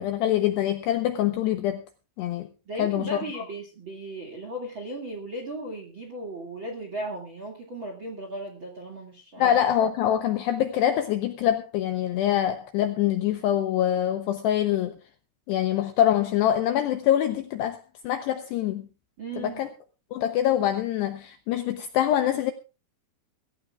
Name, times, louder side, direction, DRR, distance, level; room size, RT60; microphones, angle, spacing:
voice 1, 0.0-1.8 2.2-2.5 2.8-3.2 9.4-15.0 15.5-17.8 18.0-18.9 19.4-19.7 20.1-22.5, left 11 dB, 80° left, 2.5 m, -24 dB
voice 2, 2.6-9.5 19.2-19.6, right 1 dB, 45° right, 1.6 m, -36 dB
23.0 x 14.5 x 2.4 m
omnidirectional pair, 5.8 m